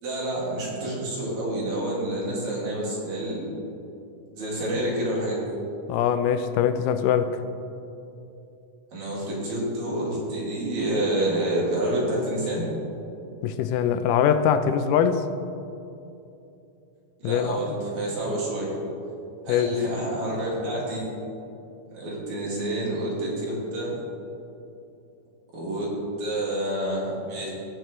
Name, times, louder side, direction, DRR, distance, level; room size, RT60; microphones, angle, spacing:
voice 1, 0.0-3.5 4.3-5.4 8.9-12.6 17.2-18.7 19.4-21.0 21.9-23.9 25.5-25.9 26.2-27.5, right 1 dB, 60° right, -5 dB, 3.3 m, -28 dB
voice 2, 5.9-7.4 13.4-15.2 17.2-17.8 19.5-19.7, left 8 dB, 85° left, 10 dB, 2.1 m, -22 dB
19.0 x 6.6 x 3.1 m, 2.8 s
omnidirectional pair, 3.8 m